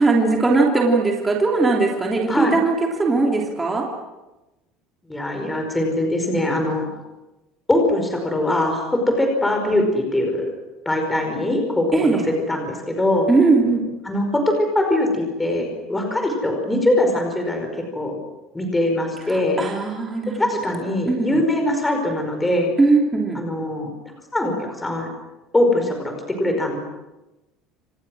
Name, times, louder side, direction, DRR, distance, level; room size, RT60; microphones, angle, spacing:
voice 1, 0.0-3.9 11.9-12.2 13.3-13.8 19.3-20.4 21.0-21.4 22.8-23.4, right 3 dB, 10° right, -1 dB, 3.2 m, -19 dB
voice 2, 5.1-6.9 7.7-10.4 10.8-12.2 12.5-13.3 14.0-17.7 17.9-18.1 18.5-19.6 20.4-22.7 23.3-23.9 24.3-25.1 25.5-26.8, left 1 dB, 5° left, 3 dB, 5.0 m, -22 dB
29.5 x 27.5 x 6.3 m, 1.0 s
cardioid pair, 175°, 0 cm